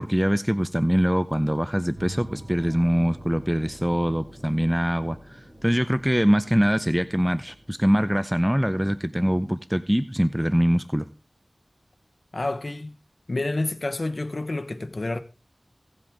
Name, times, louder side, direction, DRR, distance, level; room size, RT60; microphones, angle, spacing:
voice 1, 0.0-11.1, equal, 5° right, 0.5 m, -23 dB
sound 1, 1.9-10.2, right 1 dB, 75° right, 5.0 m, -46 dB
voice 2, 12.3-13.0 13.3-15.2, left 2 dB, 60° left, 0.9 m, -29 dB
16.5 x 7.7 x 3.5 m
wide cardioid pair, 60°, 0 cm